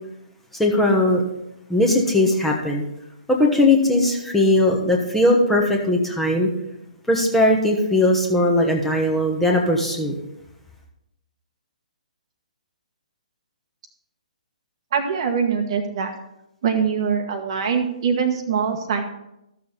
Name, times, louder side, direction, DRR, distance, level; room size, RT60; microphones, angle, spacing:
voice 1, 0.5-1.2 1.7-2.8 3.3-6.5 7.1-10.1, left 1 dB, 5° left, -1 dB, 1.2 m, -19 dB
voice 2, 14.9-16.1 16.6-19.0, right 6 dB, 45° right, 6 dB, 1.3 m, -23 dB
13.5 x 7.0 x 4.0 m, 0.84 s
figure-of-eight pair, 130°, 4 cm